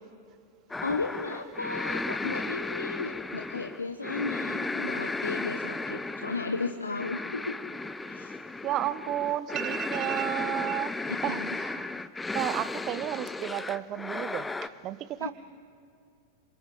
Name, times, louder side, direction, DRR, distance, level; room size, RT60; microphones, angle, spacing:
sound 1, 0.7-14.7, left 3 dB, 10° left, 0.5 m, -35 dB
voice 1, 0.8-7.6 8.1-8.4 11.3-11.6 15.2-15.3, left 3 dB, 80° left, 0.9 m, -34 dB
voice 2, 8.6-11.9 12.3-15.3, right 12 dB, 35° right, 0.6 m, -32 dB
28.0 x 25.0 x 3.9 m
figure-of-eight pair, 90°, 0 cm